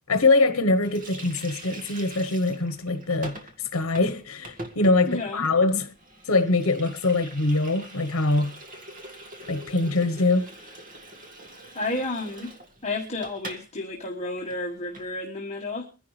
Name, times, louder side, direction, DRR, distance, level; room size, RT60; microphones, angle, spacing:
voice 1, 0.1-5.9 6.2-8.5 9.5-10.5, left 2 dB, 75° left, 1.1 m, -23 dB
Water tap faucet, 0.8-13.7 13.9-14.1 14.4-15.1, right 1 dB, 40° right, 1.8 m, -44 dB
voice 2, 5.1-5.5 11.7-12.5 12.8-15.9, left 2 dB, 30° left, 1.5 m, -31 dB
24.0 x 10.5 x 3.3 m
head